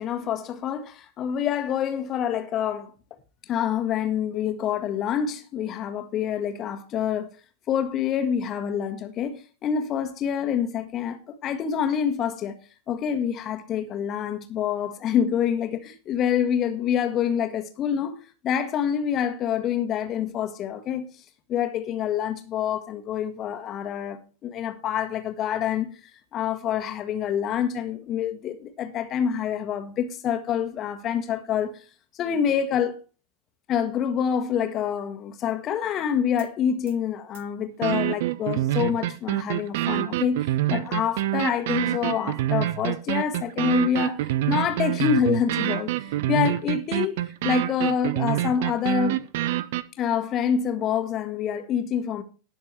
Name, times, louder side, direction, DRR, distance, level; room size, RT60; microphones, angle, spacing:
voice 1, 0.0-2.9 3.5-7.3 7.7-12.6 12.9-18.2 18.4-21.1 21.5-25.9 26.3-31.8 32.1-33.0 33.7-49.2 50.0-52.2, left 8 dB, 30° left, 1.6 m, -26 dB
sound 1, 36.4-36.5 36.9-37.0 37.3-37.4 37.8-49.8, right 14 dB, 55° right, 0.7 m, -26 dB
19.0 x 6.4 x 3.3 m
figure-of-eight pair, 90°, 0 cm